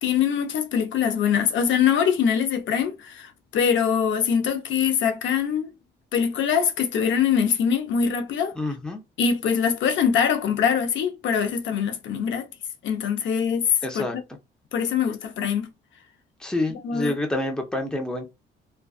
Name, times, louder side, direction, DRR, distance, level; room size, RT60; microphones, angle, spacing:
voice 1, 0.0-5.7 6.1-8.6 9.2-12.5 12.8-14.1 14.7-15.7 16.7-17.2, left 7 dB, 70° left, 0.6 m, -23 dB
voice 2, 8.6-9.0 13.8-14.2 16.4-18.3, left 2 dB, 5° left, 0.6 m, -27 dB
2.4 x 2.3 x 2.3 m
cardioid pair, 90°, 20 cm